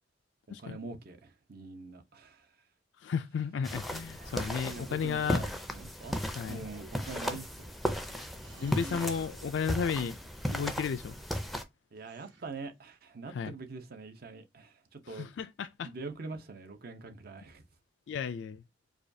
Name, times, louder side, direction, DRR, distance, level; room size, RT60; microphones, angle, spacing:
voice 1, 0.5-2.5 4.7-6.2 6.5-7.7 11.9-15.3 15.8-17.6, right 3 dB, 55° right, 0.7 m, -44 dB
voice 2, 3.0-5.4 6.4-6.6 8.6-10.2 10.5-11.1 13.3-13.5 15.1-15.9 18.1-18.6, left 6 dB, 80° left, 0.3 m, -33 dB
sound 1, 3.6-11.6, equal, ahead, 0.5 m, -36 dB
sound 2, 4.1-5.0 6.5-7.3 8.4-9.4 10.6-11.0 12.0-12.7, right 3 dB, 75° right, 1.2 m, -52 dB
4.9 x 2.3 x 2.6 m
head